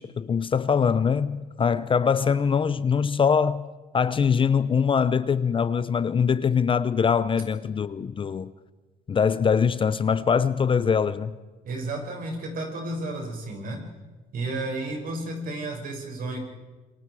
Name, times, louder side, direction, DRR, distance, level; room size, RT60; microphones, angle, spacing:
voice 1, 0.0-3.7 3.9-8.5 9.1-11.3, left 6 dB, 30° left, 0.7 m, -23 dB
voice 2, 11.6-13.9 14.3-16.4, right 2 dB, 55° right, 6.6 m, -32 dB
26.5 x 24.5 x 4.9 m
cardioid pair, 110°, 17 cm